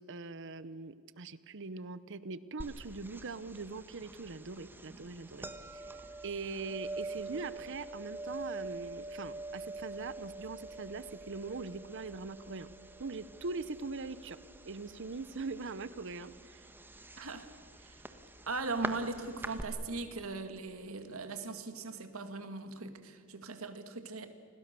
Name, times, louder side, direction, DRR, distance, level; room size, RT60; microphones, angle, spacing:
voice 1, 0.0-5.8 6.2-12.7 13.0-14.4 14.6-16.7, right 3 dB, 60° right, 16 dB, 0.8 m, -42 dB
sound 1, 2.6-19.6, right 2 dB, 10° right, 1.4 m, -45 dB
voice 2, 17.2-17.5 17.8-18.0 18.5-24.3, right 3 dB, 85° right, 8 dB, 2.2 m, -39 dB
29.5 x 21.5 x 6.9 m, 2.4 s
head